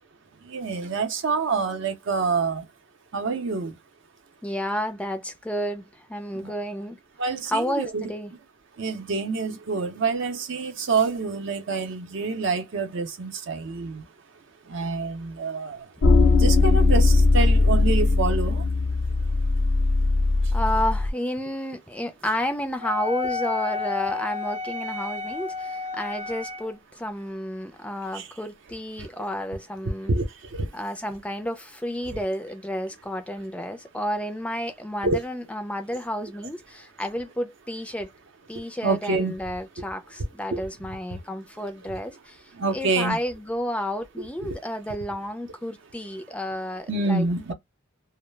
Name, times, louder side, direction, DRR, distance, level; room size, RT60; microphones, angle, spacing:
voice 1, 0.4-2.7 3.1-3.8 6.3-6.5 7.2-8.0 8.8-14.1 14.7-15.9 16.2-18.7 28.1-28.3 29.0-29.1 30.1-30.7 32.1-32.2 35.0-35.2 38.5-39.3 40.5-40.7 41.1-41.2 42.5-43.2 44.2-44.6 46.9-47.5, right 4 dB, 65° right, 0.6 m, -27 dB
voice 2, 4.4-7.0 7.5-8.3 20.5-30.1 30.7-38.1 38.5-47.3, equal, 5° left, 0.3 m, -31 dB
sound 1, 16.0-21.1, left 3 dB, 80° left, 0.6 m, -19 dB
Wind instrument woodwind instrument, 22.8-26.7, left 4 dB, 30° right, 0.7 m, -31 dB
2.3 x 2.0 x 3.1 m
head